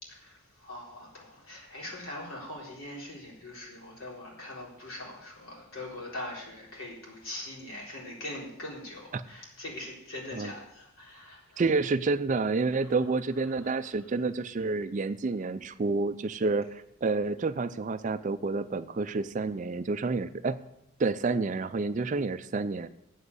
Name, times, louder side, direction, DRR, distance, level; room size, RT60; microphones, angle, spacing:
voice 1, 0.0-11.6 12.8-13.0 13.5-13.7, left 1 dB, 65° left, -4 dB, 4.0 m, -42 dB
voice 2, 11.6-20.6 21.0-22.9, right 3 dB, 35° right, 12 dB, 0.4 m, -29 dB
7.9 x 7.6 x 8.1 m, 0.81 s
head